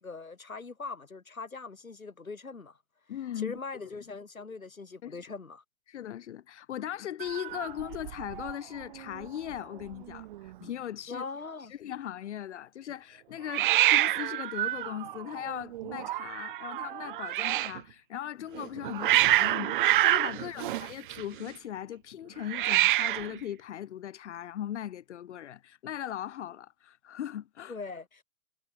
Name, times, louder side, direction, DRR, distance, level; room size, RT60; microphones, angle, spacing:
voice 1, 0.0-2.8 3.4-5.6 11.1-11.7 20.3-20.8 27.7-28.2, left 4 dB, 90° left, 3.9 m, -41 dB
voice 2, 3.1-3.6 5.0-5.2 5.9-11.2 11.7-27.7, left 11 dB, 60° left, 4.7 m, -39 dB
Hiss, 7.2-8.5 8.8-9.3 9.5-9.6 9.8-10.5 13.5-17.8 18.5-21.5 22.4-23.4, right 15 dB, 40° right, 0.6 m, -27 dB
figure-of-eight pair, 120°, 40 cm